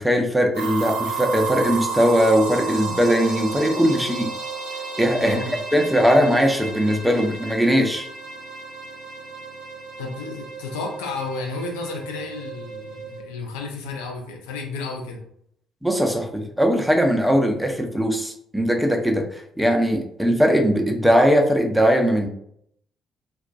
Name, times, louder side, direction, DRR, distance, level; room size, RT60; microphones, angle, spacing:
voice 1, 0.0-4.3 5.0-5.4 5.7-8.1 15.8-22.3, equal, 5° right, 2 dB, 0.5 m, -20 dB
sound 1, 0.5-13.2, right 5 dB, 75° right, 0.5 m, -32 dB
voice 2, 5.2-5.6 10.0-15.2, left 4 dB, 70° left, 1 dB, 0.4 m, -32 dB
2.3 x 2.2 x 2.5 m, 0.68 s
figure-of-eight pair, 45°, 0 cm